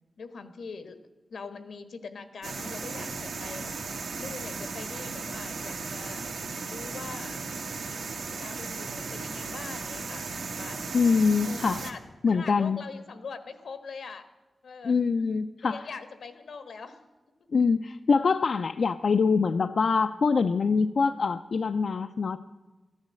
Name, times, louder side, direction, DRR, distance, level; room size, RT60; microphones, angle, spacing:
voice 1, 0.2-1.0 1.3-3.7 4.2-6.3 6.6-7.4 8.4-10.9 11.4-12.0 12.3-14.3 14.6-15.0 15.6-17.0, left 5 dB, 80° left, 10 dB, 1.3 m, -42 dB
sound 1, 2.4-11.9, right 4 dB, 85° right, 1.6 m, -36 dB
voice 2, 10.9-11.8 12.2-12.8 14.8-15.8 17.5-22.4, left 5 dB, 60° left, 9 dB, 0.4 m, -24 dB
14.5 x 10.5 x 7.5 m, 1.2 s
wide cardioid pair, 145°, 0 cm